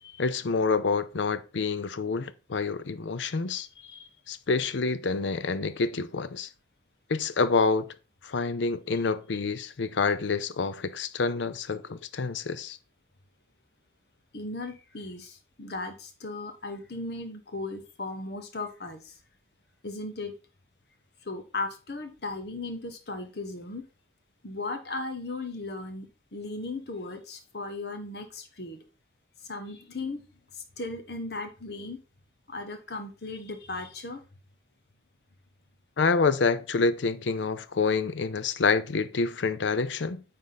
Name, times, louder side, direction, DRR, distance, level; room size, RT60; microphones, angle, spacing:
voice 1, 0.2-3.7 4.3-6.5 7.1-7.9 8.2-12.8 36.0-40.2, left 4 dB, 85° left, 0.6 m, -27 dB
voice 2, 3.5-4.1 14.3-19.2 19.8-20.3 21.2-23.8 24.4-28.8 29.4-30.2 30.5-32.0 32.5-34.2, left 2 dB, 60° left, 1.2 m, -37 dB
9.4 x 3.7 x 4.0 m
head